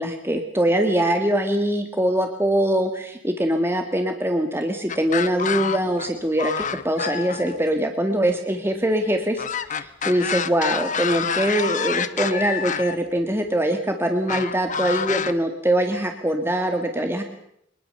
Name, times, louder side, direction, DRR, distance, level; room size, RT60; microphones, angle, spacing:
voice 1, 0.0-17.2, right 1 dB, 15° right, 4 dB, 2.0 m, -23 dB
sound 1, 4.9-6.1 6.4-7.6 9.4-13.0 14.3-15.3, left 7 dB, 45° left, 1.1 m, -27 dB
24.0 x 21.0 x 6.9 m, 0.75 s
head